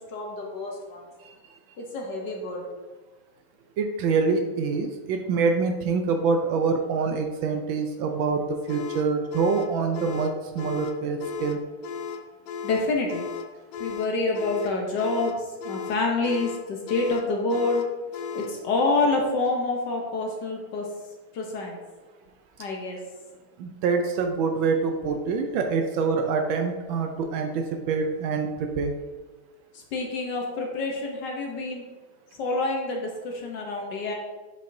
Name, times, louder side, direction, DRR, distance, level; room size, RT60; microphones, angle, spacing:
voice 1, 0.1-1.0 1.8-2.7 12.6-13.2 13.8-17.8 18.3-20.9 21.3-21.8 22.6-23.0 29.7-31.8 32.4-34.1, left 3 dB, 60° left, 0 dB, 1.3 m, -27 dB
voice 2, 3.8-11.6 23.6-28.9, right 4 dB, 75° right, 5 dB, 1.2 m, -25 dB
sound 1, 8.7-18.6, left 6 dB, 80° left, 1.4 m, -36 dB
7.6 x 5.2 x 2.7 m, 1.3 s
omnidirectional pair, 2.4 m